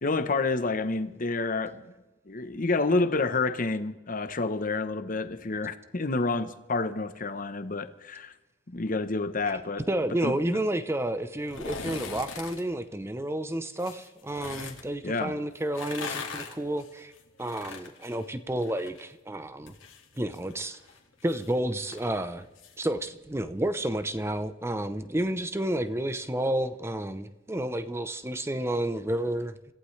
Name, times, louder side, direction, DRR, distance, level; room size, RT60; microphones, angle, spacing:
voice 1, 0.0-1.9 2.3-8.3 8.7-9.9 10.2-10.6 15.0-15.3, left 3 dB, 45° left, 0.9 m, -29 dB
voice 2, 9.9-17.1 17.4-19.7 20.2-20.8 21.2-22.5 22.8-29.5, right 1 dB, 15° right, 0.7 m, -30 dB
sound 1, 11.4-12.6 13.8-14.8 15.6-19.0 19.3-22.8 23.1-23.2, left 5 dB, 90° left, 2.1 m, -41 dB
26.5 x 14.5 x 3.3 m
head